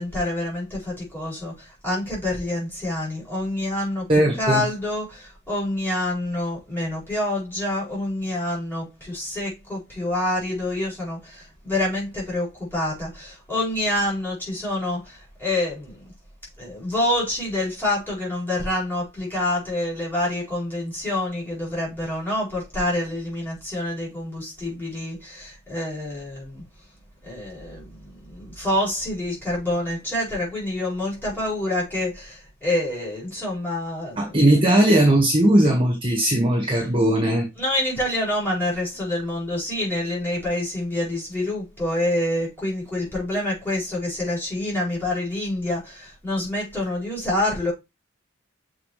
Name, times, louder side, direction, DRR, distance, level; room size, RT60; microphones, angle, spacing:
voice 1, 0.0-4.1 4.4-15.9 16.6-26.6 27.2-27.9 28.2-34.3 37.6-47.7, left 1 dB, 10° left, 5.0 m, -27 dB
voice 2, 4.1-4.6 34.2-37.4, right 1 dB, 25° right, 1.6 m, -18 dB
7.4 x 4.8 x 3.2 m
head